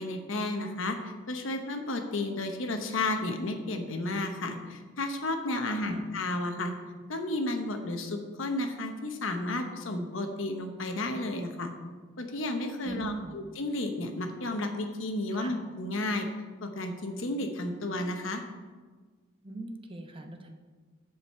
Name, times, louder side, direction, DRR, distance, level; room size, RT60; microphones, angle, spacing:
voice 1, 0.0-6.7 7.1-11.7 12.2-16.3 16.6-18.4, left 2 dB, 75° left, 5 dB, 1.0 m, -32 dB
voice 2, 12.8-13.4 15.4-15.6 19.4-20.5, right 3 dB, 25° right, 4 dB, 0.9 m, -40 dB
14.5 x 5.1 x 4.4 m, 1.4 s
head